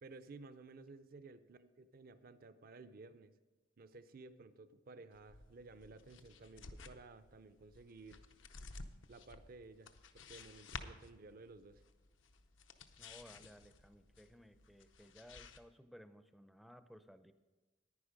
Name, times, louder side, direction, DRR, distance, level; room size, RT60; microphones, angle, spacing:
voice 1, 0.0-3.3 3.8-8.2 9.1-11.8, right 3 dB, 50° right, 12 dB, 0.5 m, -55 dB
sound 1, 5.1-15.6, left 4 dB, 75° left, 0.7 m, -54 dB
voice 2, 13.0-17.3, equal, ahead, 10 dB, 0.5 m, -59 dB
10.0 x 9.7 x 5.1 m, 1.2 s
head